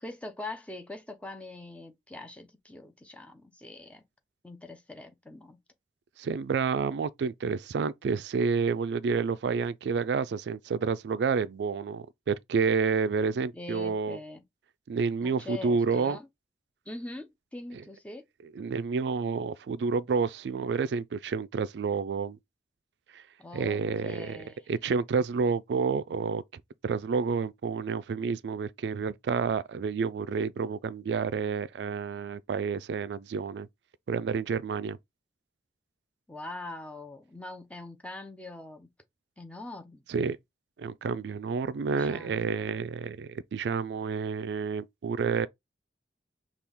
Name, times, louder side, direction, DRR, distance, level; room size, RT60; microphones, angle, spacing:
voice 1, 0.0-4.0 4.4-5.6 13.5-14.4 15.2-16.3 16.9-18.2 23.4-24.7 36.3-38.9 39.4-40.0 41.9-42.5, left 2 dB, 5° left, 0.7 m, -43 dB
voice 2, 6.2-14.2 14.9-16.2 18.6-22.4 23.1-23.2 23.5-33.7 34.1-35.0 40.1-40.4 40.8-45.5, right 5 dB, 75° right, 0.4 m, -29 dB
5.9 x 2.4 x 3.5 m
head